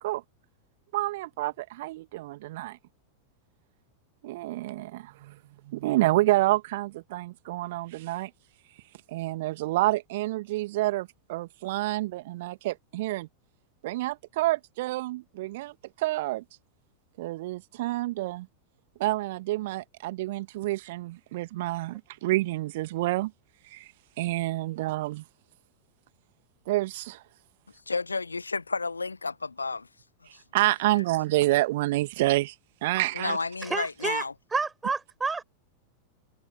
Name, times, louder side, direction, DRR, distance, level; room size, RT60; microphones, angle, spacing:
voice 1, 0.9-2.8 4.2-5.4 5.7-8.3 9.1-13.3 13.8-16.4 17.2-18.5 19.0-23.3 23.7-23.9 24.2-25.2 26.7-27.2 30.3-32.5 32.8-33.4, right 18 dB, 50° right, 2.0 m, -28 dB
voice 2, 27.9-29.9 30.3-30.4 33.1-34.3, left 4 dB, 80° left, 1.6 m, -31 dB
voice 3, 33.6-34.2 34.5-35.4, right 4 dB, 15° right, 6.2 m, -29 dB
figure-of-eight pair, 90°, 0 cm